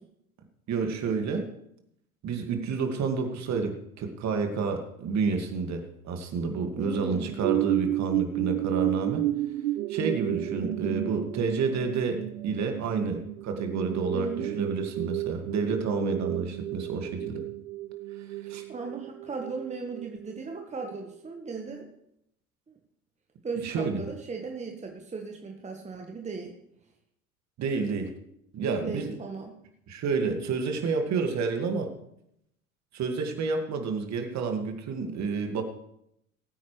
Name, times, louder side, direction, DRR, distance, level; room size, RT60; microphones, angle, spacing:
voice 1, 0.7-1.5 2.2-9.2 9.9-17.4 18.3-18.6 23.6-24.0 27.6-28.1 28.5-29.1 29.9-31.9 32.9-35.6, right 4 dB, 40° right, 5 dB, 2.3 m, -29 dB
voice 2, 6.7-7.4 10.3-11.0 14.1-14.6 18.7-21.9 22.7-22.8 23.4-26.5 28.8-29.5, right 4 dB, 15° right, 2 dB, 1.6 m, -37 dB
sound 1, 7.4-21.0 21.5-21.6, right 16 dB, 75° right, 0.5 m, -32 dB
21.0 x 9.4 x 3.4 m, 0.77 s
figure-of-eight pair, 75°, 43 cm